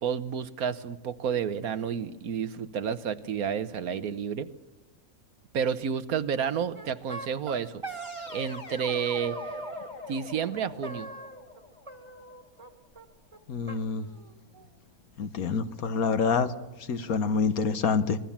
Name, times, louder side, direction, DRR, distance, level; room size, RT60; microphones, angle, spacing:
voice 1, 0.0-4.5 5.5-7.8 8.3-9.4 10.1-11.1, right 7 dB, 80° right, 13 dB, 1.5 m, -30 dB
sound 1, 6.7-8.6 8.9-9.9 10.8-11.6 11.9-12.7 12.9-13.0 13.3-13.4 13.7-14.7, right 2 dB, 20° right, 1.7 m, -41 dB
sound 2, 7.9-12.8, left 3 dB, 30° left, 1.8 m, -44 dB
voice 2, 13.5-14.1 15.2-16.5 16.9-18.2, left 5 dB, 75° left, 11 dB, 1.6 m, -26 dB
25.5 x 19.5 x 7.4 m, 1.1 s
omnidirectional pair, 1.5 m